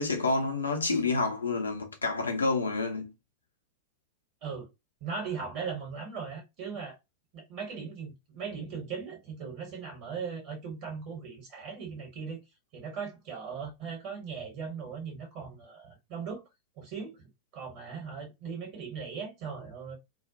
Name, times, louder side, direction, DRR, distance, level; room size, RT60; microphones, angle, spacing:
voice 1, 0.0-3.1, left 3 dB, 75° left, 0.6 m, -28 dB
voice 2, 5.0-7.0 7.3-12.4 12.7-16.4 16.8-17.3 17.5-20.0, right 6 dB, 45° right, 1.0 m, -38 dB
2.3 x 2.1 x 2.6 m
figure-of-eight pair, 90°, 0 cm